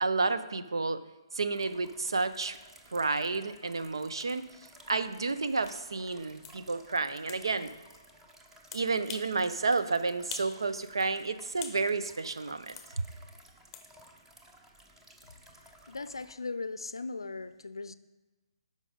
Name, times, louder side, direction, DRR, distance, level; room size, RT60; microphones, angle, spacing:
voice 1, 0.0-1.0 1.3-2.6 2.9-4.4 4.9-7.7 8.7-13.1, right 3 dB, 70° right, 0.6 m, -31 dB
sound 1, 1.5-16.3, right 1 dB, 10° right, 0.9 m, -56 dB
sound 2, 5.6-5.8 6.4-6.6 7.3-7.4 8.7-9.3 9.7-9.8 10.3-10.6 10.9-11.8 12.8-12.9 13.7-13.9, left 7 dB, 20° left, 0.8 m, -44 dB
voice 2, 15.6-17.9, left 3 dB, 75° left, 0.5 m, -39 dB
12.5 x 5.2 x 3.8 m
figure-of-eight pair, 135°, 3 cm